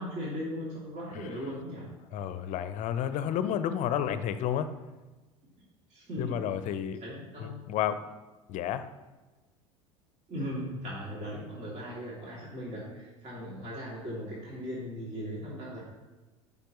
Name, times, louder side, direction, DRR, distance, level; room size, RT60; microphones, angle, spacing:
voice 1, 0.0-1.9 5.9-6.4 7.0-7.6 10.3-15.8, equal, 40° right, -6 dB, 2.8 m, -38 dB
voice 2, 2.1-4.7 6.2-7.0 7.4-8.0 8.5-8.9, left 9 dB, 45° left, 12 dB, 0.7 m, -31 dB
14.5 x 5.5 x 3.1 m, 1.2 s
figure-of-eight pair, 70°, 18 cm